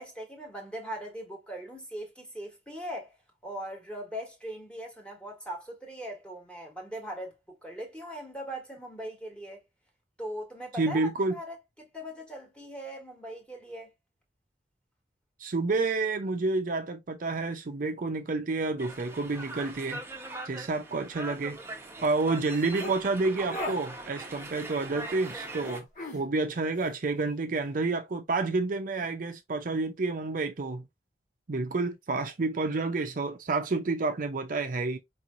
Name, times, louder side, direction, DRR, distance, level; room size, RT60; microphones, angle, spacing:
voice 1, 0.0-3.2 3.4-9.6 10.2-13.9, right 1 dB, 5° left, 1.5 m, -40 dB
voice 2, 10.8-11.4 15.4-20.0 20.5-21.6 22.0-25.9 26.1-30.8 31.5-35.0, right 3 dB, 50° right, 0.6 m, -29 dB
sound 1, 18.8-25.8, right 2 dB, 15° right, 0.8 m, -41 dB
sound 2, 22.5-23.0 23.4-23.8 25.6-26.2, left 1 dB, 50° left, 1.6 m, -36 dB
4.8 x 3.0 x 2.5 m
head